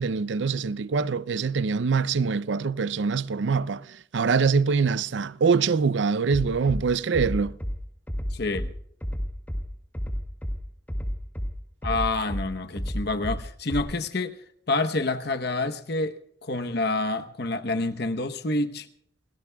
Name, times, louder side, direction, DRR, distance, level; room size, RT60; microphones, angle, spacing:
voice 1, 0.0-7.6, right 5 dB, 70° right, 0.5 m, -24 dB
Bass drum, 6.3-6.8 7.1-7.7 8.1-8.7 9.0-9.6 9.9-10.5 10.9-11.5 11.8-12.4 12.8-13.4 13.7-13.8, equal, 10° left, 2.2 m, -30 dB
voice 2, 8.3-8.7 11.8-14.4 14.7-18.9, left 2 dB, 55° left, 1.0 m, -28 dB
29.0 x 18.0 x 2.3 m
head